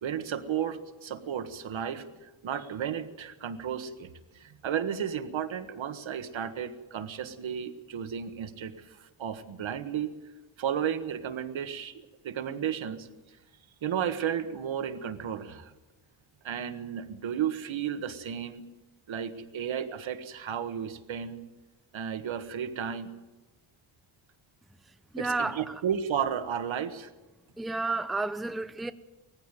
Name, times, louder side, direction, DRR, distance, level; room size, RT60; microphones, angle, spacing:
voice 1, 0.0-4.1 4.3-10.1 10.6-13.1 13.8-15.7 16.4-18.6 19.1-21.4 21.9-23.1 25.2-27.1, right 8 dB, 75° right, 1.6 m, -33 dB
voice 2, 25.1-25.7 27.6-28.9, right 3 dB, ahead, 0.6 m, -31 dB
20.0 x 15.5 x 9.2 m
wide cardioid pair, 125°, 47 cm